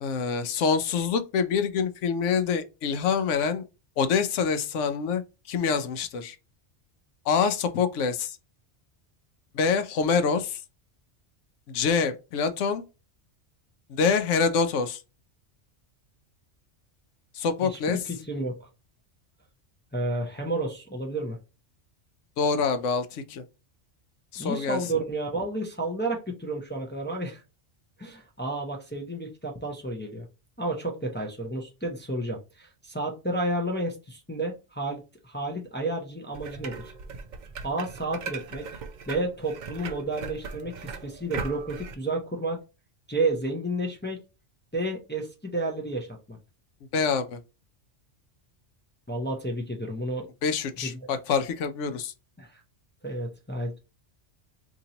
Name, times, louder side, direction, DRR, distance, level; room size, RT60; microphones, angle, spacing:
voice 1, 0.0-3.6 4.0-5.2 5.5-6.4 7.3-8.4 9.5-10.6 11.7-12.8 13.9-15.0 17.3-18.0 22.4-23.4 24.3-24.8 46.9-47.4 50.4-52.1, left 5 dB, 85° left, 0.9 m, -26 dB
voice 2, 18.1-18.6 19.9-21.4 24.4-27.4 28.0-30.3 30.6-36.9 37.6-38.7 39.1-42.6 43.1-44.2 44.7-46.4 49.1-50.3 50.8-51.1 52.4-52.6 53.0-53.8, right 2 dB, 15° left, 0.4 m, -31 dB
sound 1, 36.3-41.9, right 5 dB, 55° right, 0.5 m, -39 dB
2.9 x 2.8 x 3.8 m
omnidirectional pair, 1.2 m